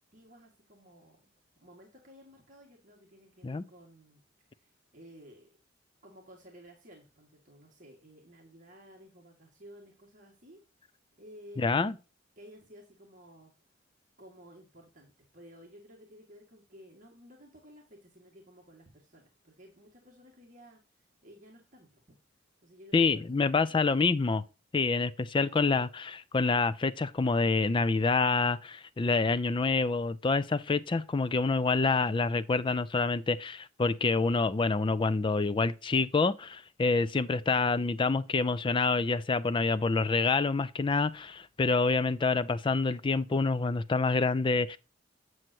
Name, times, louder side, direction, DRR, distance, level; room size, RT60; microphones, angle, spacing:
voice 1, 0.1-1.3 1.6-4.2 4.5-5.5 6.0-10.6 11.1-11.9 12.4-13.5 14.2-22.2 22.6-24.0, equal, 40° right, 1.8 m, -54 dB
voice 2, 11.6-11.9 22.9-24.4 24.7-44.8, left 4 dB, 25° left, 0.4 m, -27 dB
7.8 x 7.6 x 2.8 m
head